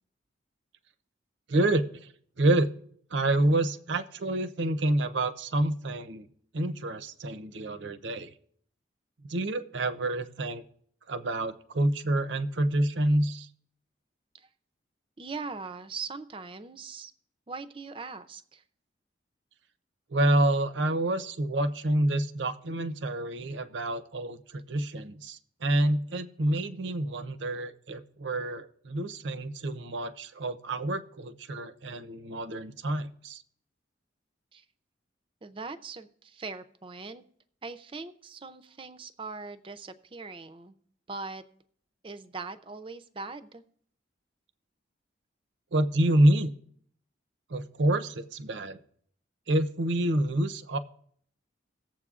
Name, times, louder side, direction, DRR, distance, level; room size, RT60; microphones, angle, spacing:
voice 1, 1.5-2.1 2.4-2.7 3.1-6.3 6.5-8.3 9.3-10.6 11.1-13.5 20.1-33.4 45.7-46.5 47.5-48.8 49.5-50.8, right 1 dB, 75° right, 11 dB, 0.6 m, -28 dB
voice 2, 15.2-17.1 17.5-18.6 34.5-34.6 35.4-37.2 37.6-40.7 41.1-41.4 42.0-43.6, right 4 dB, 25° right, 11 dB, 0.5 m, -40 dB
18.0 x 7.5 x 2.4 m, 0.62 s
head